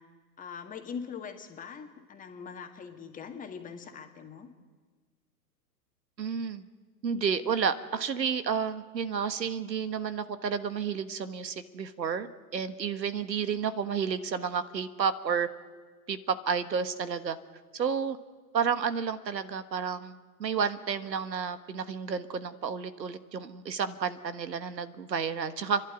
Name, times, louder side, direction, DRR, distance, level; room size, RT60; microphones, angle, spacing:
voice 1, 0.4-4.5, left 6 dB, 15° left, 5 dB, 1.8 m, -42 dB
voice 2, 6.2-6.6 7.0-12.3 12.5-15.5 16.1-17.4 17.7-18.2 18.5-25.8, right 6 dB, 85° right, 12 dB, 1.5 m, -31 dB
29.5 x 11.5 x 9.9 m, 1.5 s
hypercardioid pair, 125°, 50 cm